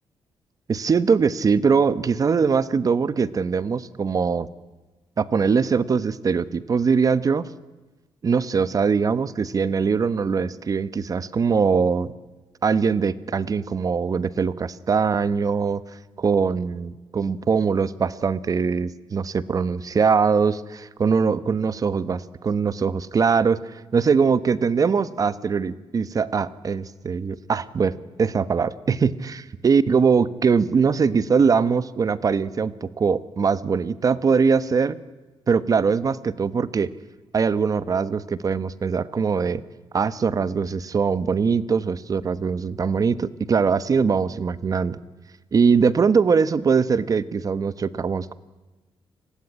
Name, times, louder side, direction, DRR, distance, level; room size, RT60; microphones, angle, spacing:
voice 1, 0.7-4.5 5.2-7.5 8.2-12.1 12.6-15.8 16.2-29.4 29.6-35.0 35.5-36.9 37.3-39.6 39.9-45.0 45.5-48.3, right 5 dB, 40° right, 16 dB, 1.1 m, -22 dB
29.5 x 20.0 x 10.0 m, 1.2 s
cardioid pair, 125°, 9 cm